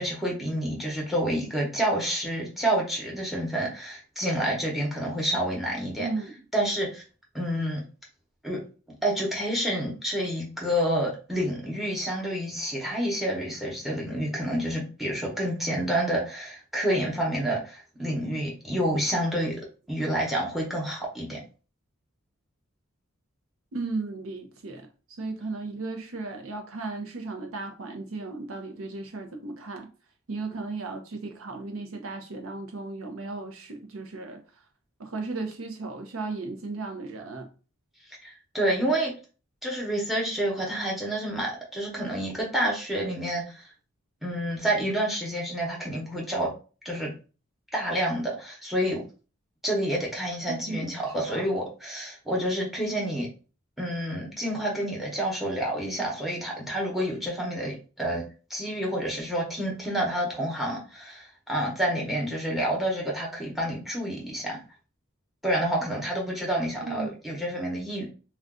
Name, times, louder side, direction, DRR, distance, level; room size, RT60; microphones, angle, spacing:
voice 1, 0.0-6.1 6.5-7.0 7.3-7.8 8.4-8.6 9.0-19.6 19.9-21.4 38.2-39.1 39.6-43.6 44.2-46.5 46.8-47.1 47.7-49.0 49.6-53.3 53.8-58.2 58.5-64.6 65.4-68.1, right 1 dB, ahead, 0.8 m, -28 dB
voice 2, 6.0-6.3 23.7-29.9 30.3-34.4 35.0-37.5 50.5-51.4 66.8-67.2, right 3 dB, 85° right, 0.7 m, -35 dB
2.5 x 2.3 x 3.6 m
head